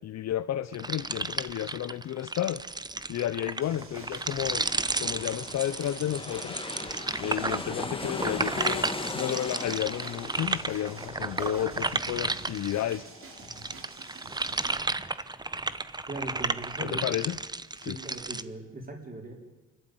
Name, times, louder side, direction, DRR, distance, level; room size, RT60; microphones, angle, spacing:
voice 1, 0.0-2.6 3.1-4.7 5.0-6.6 7.2-13.1 16.8-17.4 17.8-18.0, left 11 dB, 60° left, 13 dB, 0.7 m, -32 dB
sound 1, 0.7-13.0 13.3-18.4, right 3 dB, 15° right, 0.8 m, -33 dB
sound 2, 3.5-14.8, right 3 dB, 45° right, 3.5 m, -48 dB
sound 3, 3.7-15.1 15.5-15.6, left 3 dB, 20° left, 2.1 m, -40 dB
voice 2, 16.1-17.0 17.8-19.3, right 2 dB, 30° right, 1 dB, 4.2 m, -39 dB
27.5 x 12.5 x 9.3 m, 1.2 s
cardioid pair, 90°, 30 cm